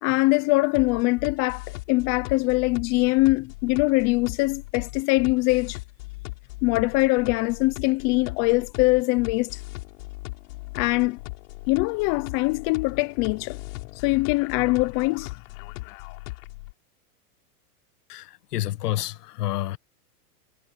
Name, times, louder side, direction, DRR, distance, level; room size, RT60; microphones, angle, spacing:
voice 1, 0.0-5.8 6.6-9.6 10.7-11.2 11.7-13.6 13.9-15.3, left 24 dB, 35° left, 0.7 m, -23 dB
sound 1, 0.7-16.7, left 23 dB, 60° left, 7.1 m, -38 dB
voice 2, 18.1-19.8, left 14 dB, 80° left, 1.5 m, -29 dB
supercardioid pair, 140°, 46 cm